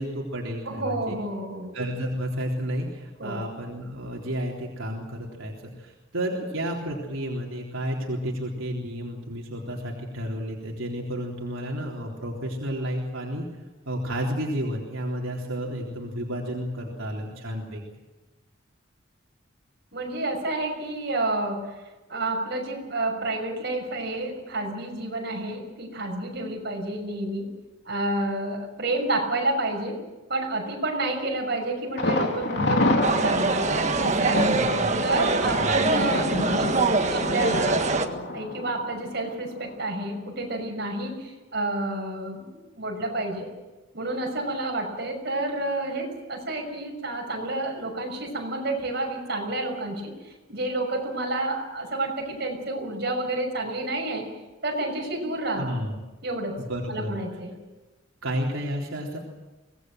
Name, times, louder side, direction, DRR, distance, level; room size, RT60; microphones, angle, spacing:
voice 1, 0.0-1.2 1.7-13.4 13.9-17.8 34.5-34.9 35.6-35.8 55.6-55.9 56.6-57.2 58.2-59.2, equal, 85° right, -1 dB, 3.7 m, -31 dB
voice 2, 0.6-1.7 3.2-3.4 19.9-21.7 22.1-27.5 27.8-30.0 30.3-33.6 34.0-34.6 35.0-36.8 37.1-37.9 38.3-43.5 43.9-54.3 54.6-55.7 56.2-56.6 56.9-57.5, right 2 dB, 55° right, 1 dB, 6.2 m, -29 dB
Thunder, 32.0-39.7 40.0-40.1 40.6-40.7, left 1 dB, 55° left, 3.1 m, -28 dB
sound 1, 33.0-38.1, right 3 dB, 35° right, 1.6 m, -24 dB
24.5 x 19.0 x 7.7 m, 1.1 s
head